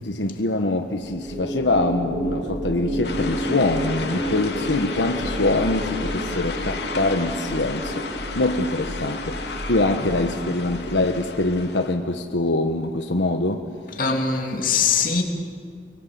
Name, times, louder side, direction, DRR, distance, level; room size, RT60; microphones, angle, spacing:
voice 1, 0.0-8.1 8.3-9.4 9.7-13.7, left 2 dB, 90° left, 1.3 m, -24 dB
sound 1, 1.0-11.4, equal, 45° right, 5.5 m, -31 dB
sound 2, 3.0-12.0, left 4 dB, 70° left, 2.7 m, -34 dB
voice 2, 14.0-15.2, left 5 dB, 50° left, 2.9 m, -21 dB
30.0 x 23.0 x 8.6 m
head